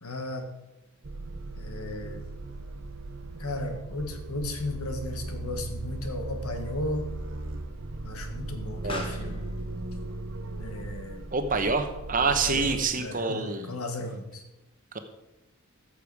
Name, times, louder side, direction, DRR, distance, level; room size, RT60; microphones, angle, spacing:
voice 1, 0.0-0.5 1.6-2.2 3.4-7.1 8.0-9.4 10.6-11.2 12.2-14.4, left 2 dB, 80° left, 5 dB, 1.6 m, -35 dB
sound 1, 1.0-12.8, right 2 dB, 60° right, 0.7 m, -37 dB
Explosion, 4.7-13.7, left 2 dB, 25° left, 1.3 m, -48 dB
voice 2, 8.8-9.2 11.3-13.7 14.9-15.0, right 4 dB, 35° right, 7 dB, 1.0 m, -27 dB
13.5 x 6.9 x 4.8 m, 0.98 s
head